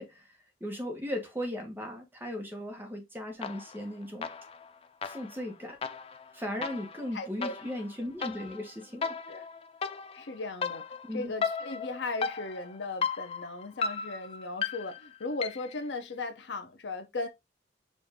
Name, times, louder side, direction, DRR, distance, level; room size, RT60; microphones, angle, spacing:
voice 1, 0.0-4.3 5.0-5.8 6.3-9.2 11.0-11.3, left 1 dB, 10° right, 1.1 m, -37 dB
sound 1, 3.4-3.9 4.2-15.8, left 5 dB, 30° left, 0.3 m, -36 dB
voice 2, 7.1-7.5 9.3-9.4 10.1-10.8 11.1-17.3, left 3 dB, 75° left, 0.8 m, -37 dB
5.2 x 2.6 x 3.5 m
head